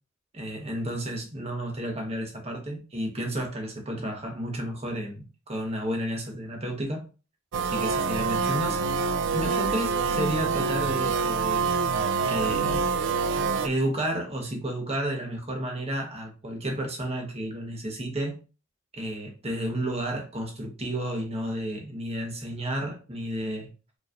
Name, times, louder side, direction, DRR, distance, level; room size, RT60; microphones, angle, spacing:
voice 1, 0.3-7.0 7.6-9.0 9.3-11.7 12.3-12.8 13.6-18.4 18.9-23.7, right 1 dB, 30° right, 1.1 m, -32 dB
sound 1, 7.5-13.7, right 5 dB, 60° right, 0.3 m, -26 dB
5.0 x 3.1 x 2.5 m
head